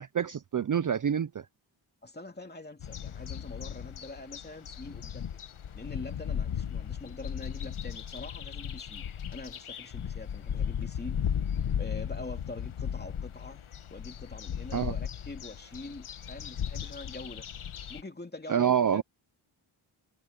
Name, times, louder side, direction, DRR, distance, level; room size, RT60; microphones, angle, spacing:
voice 1, 0.0-1.5 14.7-14.9 18.5-19.0, right 8 dB, 40° right, 0.5 m, -27 dB
voice 2, 2.0-5.4 5.7-9.0 9.3-11.2 11.8-13.6 13.9-17.4 17.9-19.0, left 2 dB, 20° left, 2.6 m, -44 dB
sound 1, 2.8-18.0, left 8 dB, 80° left, 1.4 m, -36 dB
wide cardioid pair, 155°, 48 cm